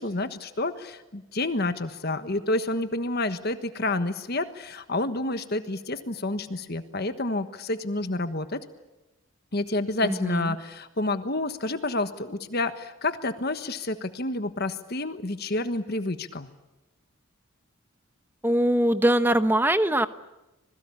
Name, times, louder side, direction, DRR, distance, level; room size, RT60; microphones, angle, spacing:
voice 1, 0.0-8.6 9.5-16.5, left 2 dB, 50° left, 9 dB, 1.3 m, -29 dB
voice 2, 10.0-10.6 18.4-20.1, right 1 dB, 10° right, 11 dB, 1.0 m, -22 dB
26.5 x 21.0 x 8.6 m, 1.0 s
head